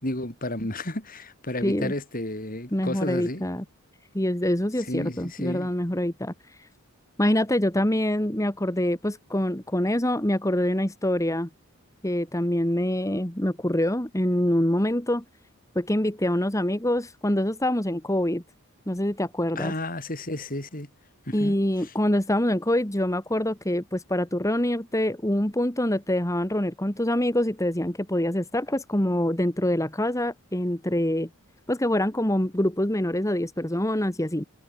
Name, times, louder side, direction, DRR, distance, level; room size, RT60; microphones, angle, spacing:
voice 1, 0.0-3.4 4.9-5.7 19.6-20.9 21.3-21.5 21.8-21.9, left 1 dB, 40° left, 5.3 m, -32 dB
voice 2, 1.6-1.9 2.7-3.6 4.1-6.3 7.2-11.5 12.0-15.2 15.8-18.4 18.9-19.7 21.3-31.3 31.7-34.5, left 1 dB, 15° left, 2.1 m, -25 dB
head